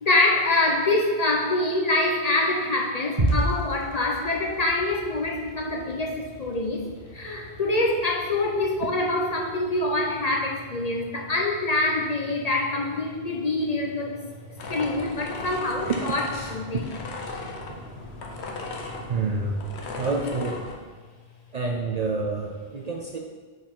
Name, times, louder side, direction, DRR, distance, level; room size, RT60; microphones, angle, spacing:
voice 1, 0.0-6.9 7.1-14.2 14.7-16.8, left 2 dB, 40° left, 0 dB, 0.8 m, -25 dB
sound 1, 3.2-21.4, right 1 dB, 30° right, 1.3 m, -37 dB
sound 2, 14.6-20.7, left 3 dB, 80° left, 1.1 m, -37 dB
voice 2, 19.1-19.6 19.9-20.6 21.5-23.2, right 3 dB, 50° right, 1 dB, 0.6 m, -28 dB
5.2 x 4.6 x 5.3 m, 1.4 s
omnidirectional pair, 1.1 m